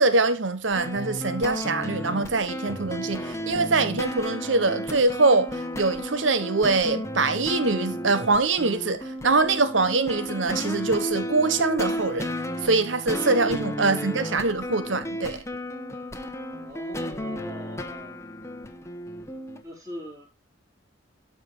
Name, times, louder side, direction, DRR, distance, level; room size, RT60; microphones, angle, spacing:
voice 1, 0.0-12.3 12.6-15.4, right 3 dB, 85° right, 1.2 m, -23 dB
sound 1, 0.7-19.6, equal, 15° left, 0.9 m, -33 dB
voice 2, 16.6-18.3 19.6-20.3, equal, 20° right, 4.3 m, -41 dB
12.5 x 5.2 x 3.9 m
head